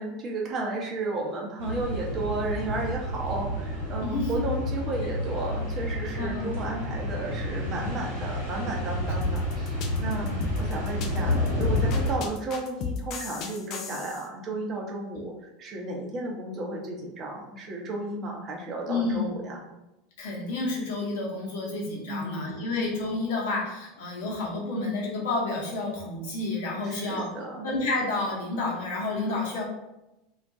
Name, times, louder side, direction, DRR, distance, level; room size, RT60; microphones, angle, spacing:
voice 1, 0.0-19.6 22.1-22.7 26.8-27.7, right 2 dB, 35° right, -1 dB, 0.6 m, -33 dB
sound 1, 1.6-12.2, left 1 dB, 85° right, 0.8 m, -30 dB
voice 2, 4.0-4.5 6.2-6.5 10.1-10.5 18.9-19.3 20.2-27.3 27.6-29.6, left 2 dB, 60° left, -3 dB, 0.7 m, -30 dB
sound 2, 9.2-14.2, left 6 dB, 45° left, 0.3 m, -34 dB
2.3 x 2.1 x 2.6 m, 0.93 s
figure-of-eight pair, 80°, 0 cm